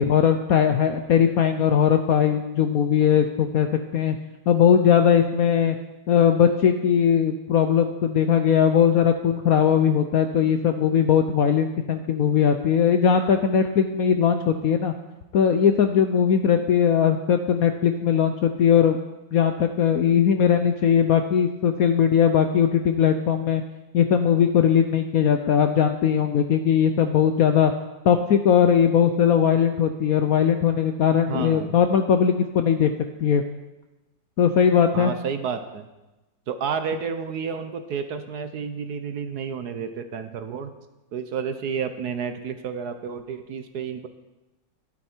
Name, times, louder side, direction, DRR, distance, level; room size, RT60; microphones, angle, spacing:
voice 1, 0.0-3.7 3.9-4.2 4.5-5.8 6.1-14.9 15.3-19.0 19.3-23.6 23.9-27.7 28.0-32.9 33.2-33.4 34.4-35.1, left 8 dB, 70° left, 7 dB, 0.9 m, -19 dB
voice 2, 31.3-31.7 34.9-35.9 36.5-40.7 41.1-44.1, right 6 dB, 60° right, 9 dB, 1.2 m, -30 dB
12.5 x 11.5 x 4.4 m, 1.0 s
omnidirectional pair, 2.1 m